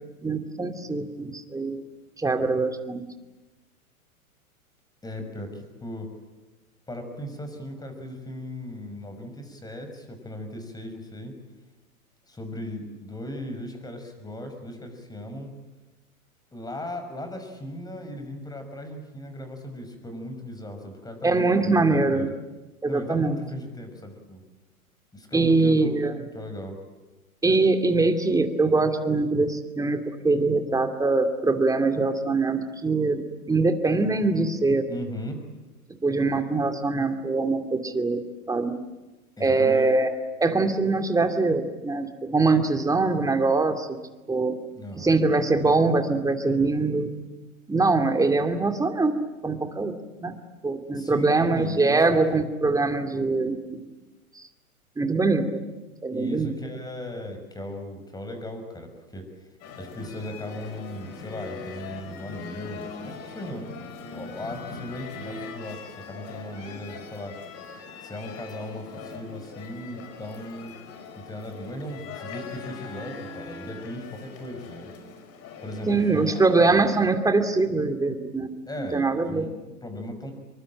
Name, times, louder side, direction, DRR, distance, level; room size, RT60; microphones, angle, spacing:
voice 1, 0.2-1.8 2.2-3.0 21.2-22.3 22.8-23.4 25.3-26.3 27.4-33.2 33.5-34.8 36.0-38.2 38.5-38.8 39.4-40.1 40.4-44.0 44.3-44.6 45.0-47.1 47.7-49.1 49.4-49.9 50.2-50.3 50.6-53.8 54.3-54.4 55.0-55.6 56.0-56.5 75.9-79.4, right 3 dB, 10° right, 7 dB, 2.5 m, -23 dB
voice 2, 5.0-6.1 6.9-11.3 12.3-15.5 16.5-22.3 22.8-24.4 25.1-26.0 26.3-26.8 34.9-35.4 39.4-39.9 44.7-45.2 50.9-52.0 52.3-52.4 56.1-59.3 59.8-63.7 64.1-67.4 68.0-70.7 71.2-74.9 75.6-76.9 78.7-80.3, left 1 dB, 10° left, 6 dB, 6.1 m, -37 dB
sound 1, 59.6-77.0, left 5 dB, 35° left, 4.9 m, -41 dB
26.5 x 23.5 x 9.0 m, 1.1 s
figure-of-eight pair, 105°, 43 cm